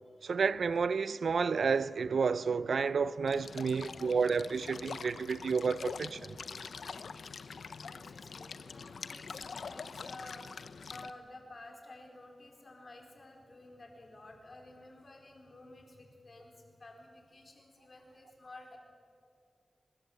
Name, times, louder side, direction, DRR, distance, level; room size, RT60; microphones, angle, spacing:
voice 1, 0.2-6.3, right 5 dB, 80° right, 0.5 m, -30 dB
sound 1, 3.3-11.1, left 5 dB, 80° left, 0.8 m, -44 dB
voice 2, 7.8-18.8, left 2 dB, 45° left, 4.6 m, -52 dB
23.5 x 21.0 x 8.1 m
wide cardioid pair, 95°, 0 cm